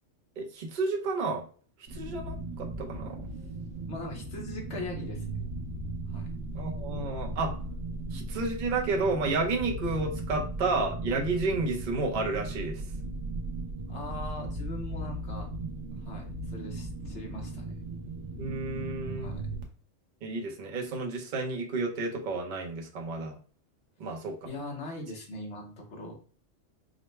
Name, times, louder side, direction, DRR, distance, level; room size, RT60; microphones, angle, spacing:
voice 1, 0.4-1.4 1.9-3.2 6.5-7.5 8.1-12.8 18.4-19.3 20.2-23.4 24.0-24.4, right 3 dB, 45° right, 0 dB, 0.8 m, -31 dB
sound 1, 1.9-19.6, right 2 dB, 85° right, 1.2 m, -37 dB
voice 2, 3.9-5.4 6.1-6.3 13.9-15.5 16.0-17.7 19.1-19.4 24.4-26.1, left 2 dB, 60° left, 0 dB, 1.4 m, -41 dB
5.1 x 2.2 x 3.2 m, 0.42 s
omnidirectional pair, 1.3 m